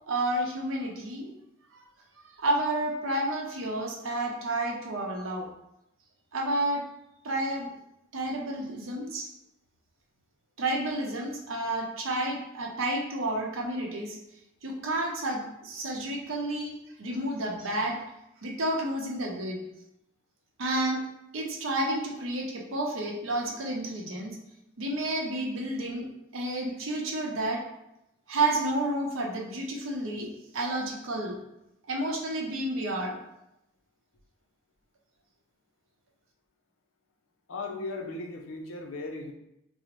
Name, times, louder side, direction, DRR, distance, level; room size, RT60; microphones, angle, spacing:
voice 1, 0.1-1.3 1.7-1.8 2.2-5.5 6.3-6.8 7.2-7.7 8.1-9.3 10.6-14.2 14.6-18.0 18.4-19.6 20.6-21.0 21.3-24.4 24.8-26.1 26.3-27.6 28.3-31.4 31.9-33.2, right 1 dB, 80° right, 0 dB, 0.6 m, -30 dB
voice 2, 37.5-39.3, left 3 dB, 80° left, 2 dB, 0.5 m, -37 dB
3.8 x 2.0 x 3.0 m, 0.85 s
head